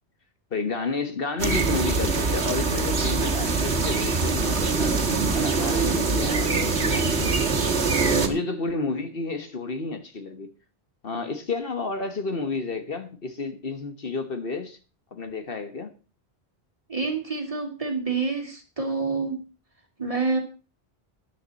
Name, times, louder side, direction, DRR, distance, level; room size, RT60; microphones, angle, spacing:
voice 1, 0.5-4.9 5.3-7.3 8.3-10.5 11.0-14.8 15.1-15.9, left 3 dB, 60° left, 1.5 m, -31 dB
sound 1, 1.4-8.3, right 4 dB, 80° right, 1.8 m, -23 dB
voice 2, 7.9-8.3 16.9-19.4 20.0-20.4, right 4 dB, 30° right, 2.6 m, -28 dB
13.5 x 10.0 x 4.1 m
omnidirectional pair, 1.1 m